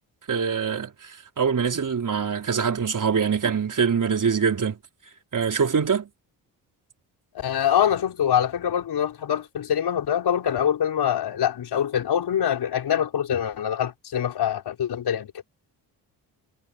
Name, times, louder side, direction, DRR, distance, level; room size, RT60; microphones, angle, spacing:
voice 1, 0.3-4.8 5.3-6.1, right 6 dB, 45° right, 4.5 m, -24 dB
voice 2, 7.3-15.3, left 9 dB, 65° left, 5.6 m, -24 dB
supercardioid pair, 65°, 42 cm